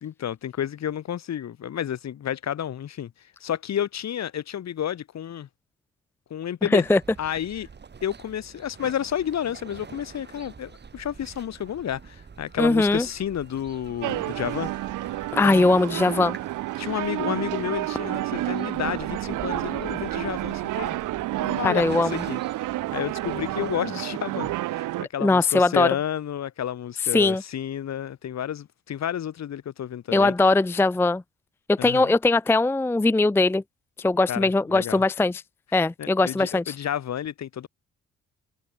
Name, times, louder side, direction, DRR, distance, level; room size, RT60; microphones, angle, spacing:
voice 1, 0.0-3.1 3.4-5.5 6.3-6.9 7.2-7.7 8.0-14.7 15.4-15.8 16.8-21.0 21.4-30.3 31.8-32.2 34.3-35.0 36.0-37.7, left 10 dB, 60° left, 3.5 m, -31 dB
voice 2, 6.6-7.0 12.6-13.1 15.3-16.4 21.6-22.1 25.2-25.9 27.1-27.4 30.1-31.2 31.7-33.6 34.0-35.4 35.7-36.8, left 2 dB, 10° left, 0.5 m, -20 dB
sound 1, 6.8-23.8, right 5 dB, 35° right, 2.6 m, -46 dB
sound 2, 14.0-25.0, right 16 dB, 90° right, 2.7 m, -30 dB
cardioid pair, 90°, 30 cm